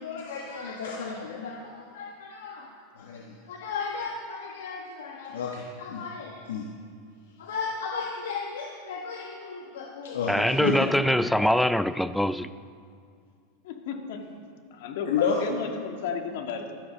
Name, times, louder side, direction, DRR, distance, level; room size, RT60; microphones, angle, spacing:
voice 1, 0.0-6.7 7.4-10.9 15.1-15.4, left 5 dB, 85° left, 1.2 m, -33 dB
voice 2, 10.3-12.5, equal, 5° left, 0.4 m, -23 dB
voice 3, 13.6-14.3 14.7-16.8, left 6 dB, 70° left, 1.7 m, -33 dB
12.5 x 10.0 x 6.3 m
supercardioid pair, 125°, 0 cm